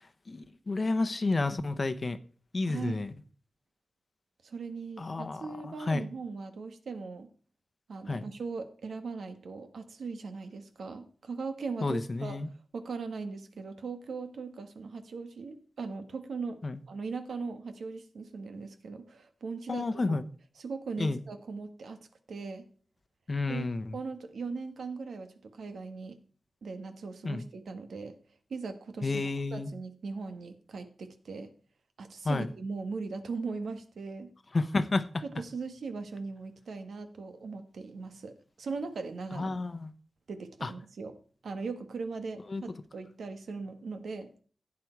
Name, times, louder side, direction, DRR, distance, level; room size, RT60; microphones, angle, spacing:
voice 1, 0.3-2.2 2.5-3.1 5.0-6.1 8.1-8.3 11.8-12.5 16.6-16.8 19.7-20.2 21.0-21.2 23.3-23.9 27.2-27.5 29.0-29.7 32.2-32.5 34.5-35.2 39.3-39.9 40.6-40.7 42.5-42.6, left 3 dB, 30° left, 11 dB, 0.9 m, -30 dB
voice 2, 2.6-3.0 4.4-7.3 7.9-16.6 16.9-20.2 20.6-22.0 22.3-22.7 23.5-23.7 23.9-26.2 26.6-28.2 28.5-29.2 29.5-31.5 32.0-34.3 35.2-39.5 40.3-41.1 41.4-44.3, right 4 dB, 80° right, 7 dB, 1.5 m, -39 dB
16.0 x 8.5 x 4.6 m, 0.44 s
wide cardioid pair, 165°, 0 cm